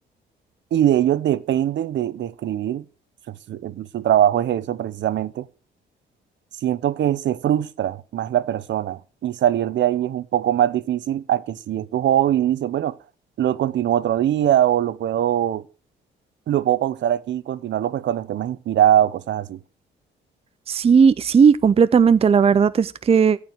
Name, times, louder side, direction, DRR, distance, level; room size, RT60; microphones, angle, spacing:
voice 1, 0.7-2.8 3.3-5.5 6.6-13.0 13.4-15.6 16.5-19.6, right 11 dB, 65° right, 0.8 m, -22 dB
voice 2, 20.7-23.4, right 6 dB, 30° right, 0.5 m, -16 dB
14.5 x 4.9 x 7.4 m
cardioid pair, 90°, 20 cm